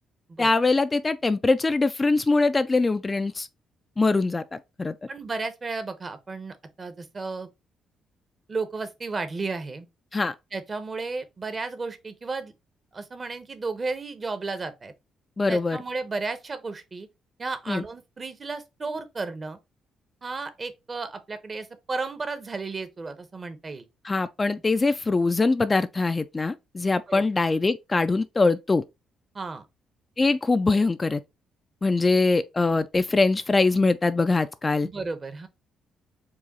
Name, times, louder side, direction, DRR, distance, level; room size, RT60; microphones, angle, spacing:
voice 1, 0.4-3.5 4.0-4.9 10.1-10.3 15.4-15.8 17.7-17.9 24.0-28.8 30.2-31.2 31.8-34.9, left 3 dB, 25° left, 0.3 m, -23 dB
voice 2, 5.1-7.5 8.5-9.9 10.5-12.5 12.9-14.9 15.5-17.1 17.4-19.6 20.2-23.9 27.1-27.2 29.3-29.6 34.8-35.5, right 3 dB, 35° right, 0.8 m, -33 dB
4.7 x 2.3 x 4.1 m
cardioid pair, 90°, 0 cm